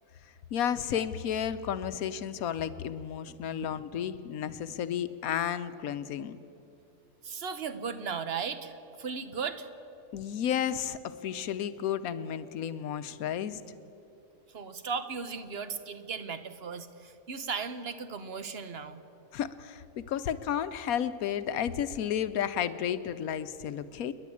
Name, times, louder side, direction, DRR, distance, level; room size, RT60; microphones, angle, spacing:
voice 1, 0.5-6.4 10.1-13.6 19.3-24.1, left 9 dB, 80° left, 13 dB, 1.2 m, -32 dB
voice 2, 7.2-9.7 14.5-19.0, right 5 dB, 50° right, 11 dB, 1.1 m, -36 dB
28.5 x 10.5 x 8.6 m, 2.9 s
omnidirectional pair, 1.5 m